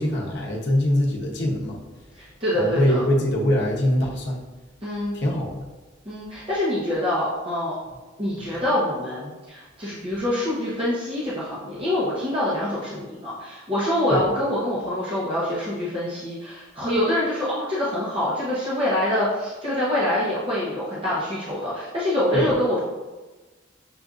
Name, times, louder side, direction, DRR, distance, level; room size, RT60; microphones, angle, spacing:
voice 1, 0.0-1.8 2.5-4.4 5.1-5.6 14.1-14.3 22.3-22.5, left 1 dB, 60° left, -2 dB, 0.8 m, -23 dB
voice 2, 2.2-3.0 4.8-5.1 6.0-7.7 8.2-22.8, left 1 dB, 25° right, -9 dB, 0.8 m, -25 dB
6.7 x 2.5 x 2.4 m, 1.2 s
head